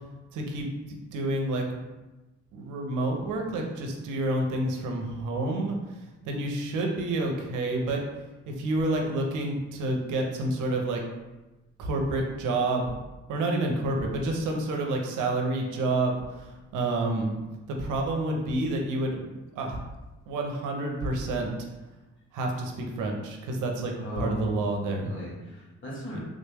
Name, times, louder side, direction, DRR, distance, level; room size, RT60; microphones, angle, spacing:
voice 1, 0.3-0.7 1.1-1.8 2.5-6.0 6.2-8.0 8.5-11.0 11.8-12.9 13.3-17.4 17.7-19.2 19.6-19.8 20.3-21.5 22.3-25.1 26.1-26.2, right 2 dB, 80° right, 2 dB, 0.7 m, -29 dB
voice 2, 23.9-24.6 25.0-26.2, left 1 dB, 40° left, -5 dB, 1.4 m, -37 dB
3.6 x 2.1 x 3.3 m, 1.1 s
cardioid pair, 90°, 30 cm